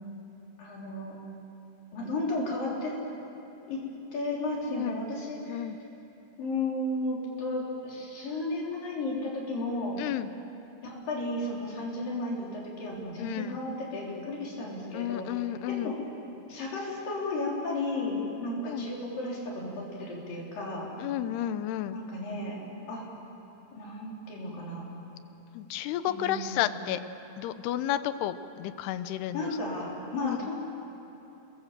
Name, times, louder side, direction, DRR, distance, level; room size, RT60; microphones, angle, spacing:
voice 1, 0.6-1.2 1.9-3.0 3.7-3.8 4.1-5.7 6.4-10.0 10.8-15.3 15.7-16.0 16.5-20.9 21.9-22.6 22.9-23.1 23.8-24.9 26.1-26.6 29.3-30.6, left 2 dB, 60° left, -3 dB, 5.5 m, -33 dB
voice 2, 10.0-10.3 13.2-13.6 14.9-15.9 18.6-18.9 21.0-22.0 25.5-27.0 27.4-29.5 30.2-30.4, left 12 dB, 85° left, 12 dB, 2.8 m, -32 dB
29.5 x 21.5 x 7.5 m, 3.0 s
omnidirectional pair, 4.6 m